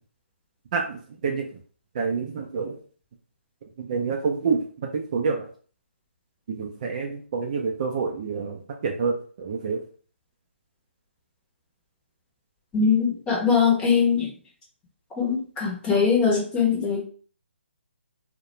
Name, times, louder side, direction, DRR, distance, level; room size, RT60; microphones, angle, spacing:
voice 1, 2.0-2.8 3.8-4.6 4.9-5.4 6.5-9.8, right 5 dB, 35° right, 1 dB, 0.4 m, -27 dB
voice 2, 12.7-14.3 15.2-17.0, left 6 dB, 10° left, -3 dB, 0.7 m, -21 dB
2.3 x 2.1 x 2.9 m, 0.42 s
figure-of-eight pair, 150°, 7 cm